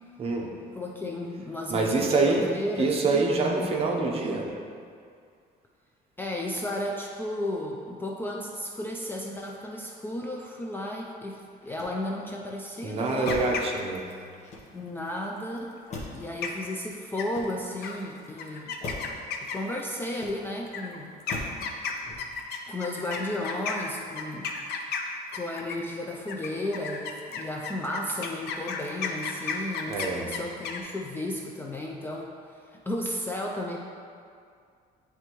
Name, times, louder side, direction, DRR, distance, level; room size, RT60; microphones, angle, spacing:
voice 1, 0.2-0.5 1.7-2.4 2.8-4.5 12.8-14.1 29.9-30.3, right 3 dB, 35° right, 0 dB, 0.7 m, -25 dB
voice 2, 0.7-3.2 6.2-13.6 14.7-15.8 16.1-18.7 19.4-21.5 22.7-24.5 25.3-33.8, left 1 dB, 15° left, -1 dB, 0.3 m, -34 dB
Motor vehicle (road), 11.6-12.4 13.2-13.7 14.4-15.0 15.9-16.4 17.1-17.9 18.8-19.2 20.1-20.7 21.3-21.7 22.0-22.5, left 2 dB, 45° left, 0.9 m, -40 dB
sound 1, 13.1-14.1 16.0-16.2 16.4-16.8 17.2-17.5 17.8-18.0 18.4-19.8 20.7-25.9 26.3-30.8, left 5 dB, 80° left, 0.6 m, -34 dB
9.5 x 3.4 x 3.0 m, 2.2 s
cardioid pair, 155°, 17 cm